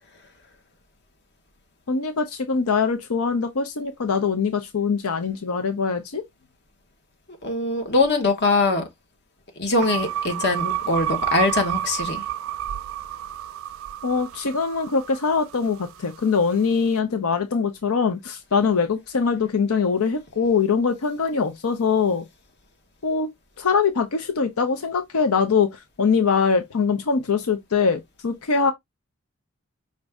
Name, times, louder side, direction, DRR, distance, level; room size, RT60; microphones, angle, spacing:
voice 1, 1.9-6.2 14.0-22.3 23.0-23.3 23.6-28.7, left 5 dB, 85° left, 0.6 m, -23 dB
voice 2, 7.4-8.8 9.6-12.2, left 3 dB, 50° left, 1.2 m, -22 dB
sound 1, 9.8-16.2, right 11 dB, 70° right, 0.3 m, -30 dB
5.1 x 2.6 x 3.4 m
head